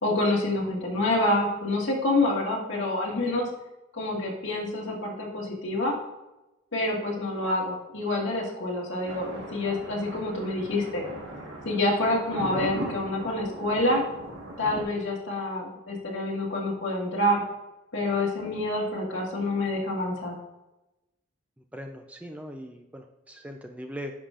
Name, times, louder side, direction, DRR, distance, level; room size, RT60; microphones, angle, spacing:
voice 1, 0.0-3.5 4.0-6.0 6.7-11.0 11.7-14.0 14.6-17.4 17.9-20.4, left 1 dB, 65° left, -3 dB, 1.9 m, -27 dB
Thunder, 9.1-14.8, right 1 dB, 70° right, 1.5 m, -38 dB
voice 2, 21.7-24.1, equal, 5° right, 4 dB, 0.4 m, -40 dB
10.0 x 5.6 x 2.5 m, 1.0 s
head